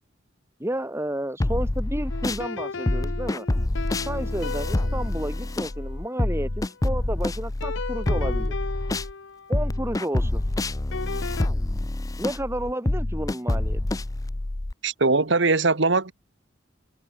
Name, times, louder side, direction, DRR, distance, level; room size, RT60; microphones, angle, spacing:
voice 1, 0.6-3.5 4.1-6.5 6.8-8.5 9.5-10.4 12.2-13.8, right 1 dB, 10° right, 1.9 m, -31 dB
sound 1, 1.4-2.5 2.9-9.1 9.5-14.7, left 1 dB, 15° left, 0.5 m, -27 dB
sound 2, 2.1-6.9 7.6-11.5, left 4 dB, 60° left, 0.8 m, -37 dB
voice 2, 14.8-16.1, right 3 dB, 60° right, 1.4 m, -21 dB
head